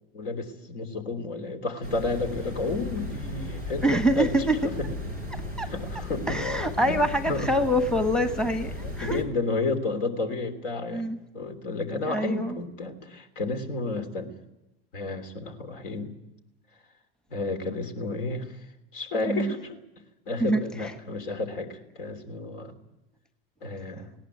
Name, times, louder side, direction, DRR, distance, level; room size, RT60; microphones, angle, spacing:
voice 1, 0.1-4.3 4.6-4.9 5.6-6.4 6.7-7.0 7.2-7.5 8.3-8.4 9.0-11.1 11.3-14.3 14.9-16.1 17.3-18.6 18.9-19.8 20.3-22.7 23.6-24.1, left 3 dB, 60° left, 6 dB, 3.2 m, -31 dB
sound 1, 1.8-9.2, left 1 dB, 85° left, 5.9 m, -36 dB
voice 2, 3.8-4.6 5.6-5.7 6.3-9.2 10.9-11.2 12.1-12.6 19.3-19.5 20.4-20.6, equal, ahead, 9 dB, 1.2 m, -25 dB
20.0 x 18.0 x 9.0 m, 0.94 s
figure-of-eight pair, 80°, 31 cm